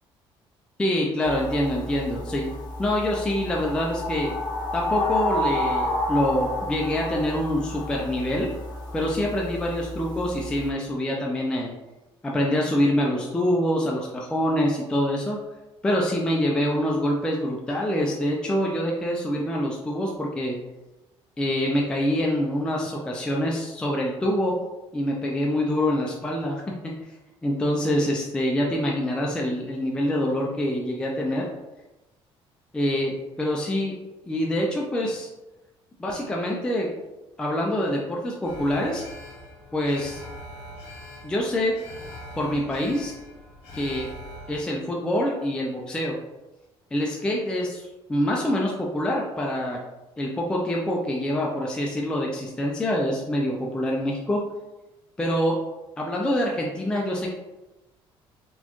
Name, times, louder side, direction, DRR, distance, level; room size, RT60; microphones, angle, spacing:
voice 1, 0.8-2.5 2.8-4.3 4.7-8.5 8.9-11.7 12.2-15.4 15.8-20.6 21.4-24.5 24.9-26.9 27.4-31.5 32.7-33.1 33.4-33.9 34.3-35.3 36.0-36.9 37.4-39.0 39.7-40.2 41.2-41.7 42.3-43.1 43.7-44.1 44.5-46.1 46.9-49.8 50.2-54.4 55.2-55.6 56.0-57.4, left 1 dB, 10° left, -2 dB, 0.3 m, -25 dB
sound 1, 1.2-10.7, left 1 dB, 40° left, 0.8 m, -31 dB
Alarm, 38.4-44.6, left 1 dB, 70° left, 1.2 m, -42 dB
4.2 x 2.2 x 2.9 m, 1.0 s
cardioid pair, 175°, 10 cm